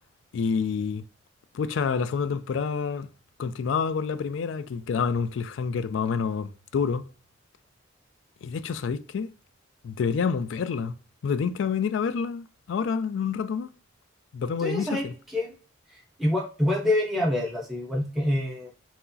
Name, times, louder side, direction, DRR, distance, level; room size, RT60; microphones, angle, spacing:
voice 1, 0.3-1.0 1.5-3.1 3.4-7.0 8.4-9.3 9.8-10.9 11.2-13.7 14.3-15.1, left 6 dB, 80° left, 0.3 m, -28 dB
voice 2, 14.6-15.5 15.9-18.7, left 1 dB, ahead, 0.7 m, -27 dB
4.4 x 2.0 x 2.6 m
head